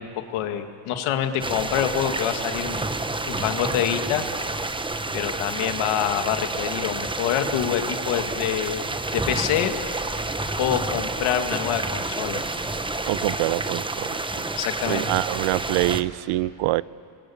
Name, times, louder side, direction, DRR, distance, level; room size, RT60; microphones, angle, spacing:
voice 1, 0.0-2.9 3.3-4.3 5.1-8.8 9.1-9.7 10.6-12.4 14.6-15.1, left 10 dB, 85° left, 7 dB, 1.9 m, -26 dB
sound 1, 1.4-16.0, right 2 dB, 10° right, 0.9 m, -29 dB
voice 2, 13.1-14.5 14.9-16.8, right 18 dB, 80° right, 20 dB, 0.6 m, -25 dB
30.0 x 21.5 x 8.6 m, 2.6 s
cardioid pair, 110°, 48 cm